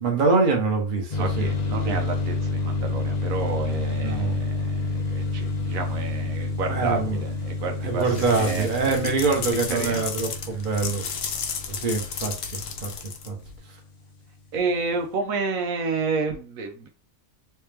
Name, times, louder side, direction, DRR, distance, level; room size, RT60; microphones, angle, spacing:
voice 1, 0.0-1.5 1.8-1.9 4.0-4.4 6.7-7.2 7.8-11.0 11.7-12.9 13.3-13.4, right 4 dB, 40° right, 1.1 m, -24 dB
sound 1, 1.1-13.6, left 2 dB, 45° left, 0.6 m, -29 dB
voice 2, 1.2-9.2 9.7-10.0 14.5-16.9, right 4 dB, 80° right, 1.2 m, -30 dB
sound 2, 8.0-13.6, left 6 dB, 70° left, 1.0 m, -34 dB
3.3 x 3.0 x 3.3 m
omnidirectional pair, 1.4 m